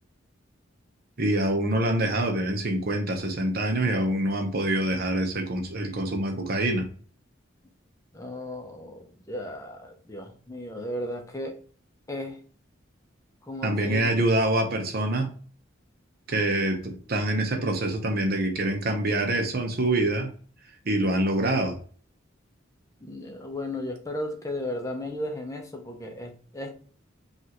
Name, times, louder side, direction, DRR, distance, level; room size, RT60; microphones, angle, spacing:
voice 1, 1.2-6.9 13.6-15.3 16.3-20.3 20.8-21.8, right 1 dB, 50° right, 4 dB, 0.8 m, -25 dB
voice 2, 8.1-11.6 12.1-12.4 13.4-14.1 23.0-26.7, left 1 dB, 15° left, 3 dB, 0.7 m, -35 dB
5.3 x 2.5 x 3.0 m, 0.43 s
head